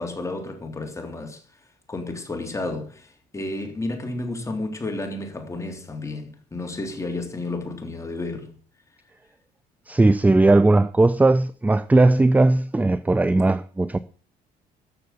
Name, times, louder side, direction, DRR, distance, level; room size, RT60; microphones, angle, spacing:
voice 1, 0.0-1.4 1.9-8.5, left 2 dB, 15° left, 3.3 m, -31 dB
voice 2, 9.9-14.0, right 2 dB, 10° right, 0.5 m, -18 dB
13.5 x 6.9 x 6.7 m
cardioid pair, 110°, 17 cm